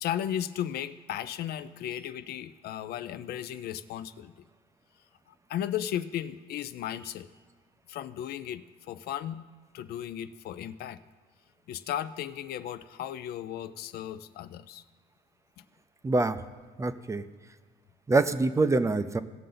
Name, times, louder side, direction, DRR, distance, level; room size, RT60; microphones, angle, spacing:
voice 1, 0.0-4.3 5.3-7.3 7.9-9.4 9.7-11.0 11.7-14.8 15.6-15.7, left 10 dB, 70° left, 13 dB, 0.5 m, -35 dB
voice 2, 16.0-16.4 16.8-17.2 18.1-19.2, right 3 dB, 15° right, 12 dB, 0.5 m, -25 dB
18.0 x 6.5 x 3.9 m, 1.5 s
cardioid pair, 110°, 17 cm